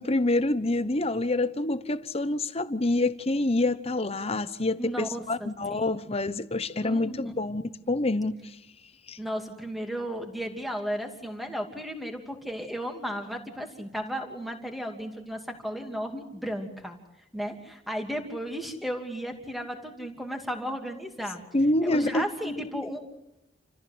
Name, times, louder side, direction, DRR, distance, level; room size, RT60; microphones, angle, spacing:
voice 1, 0.0-8.6 9.1-9.2 21.5-22.6, left 2 dB, 35° left, 1.0 m, -27 dB
voice 2, 4.8-5.9 6.8-7.2 9.2-17.0 17.3-21.4 21.8-23.0, equal, ahead, 2.8 m, -34 dB
29.0 x 14.5 x 8.0 m
head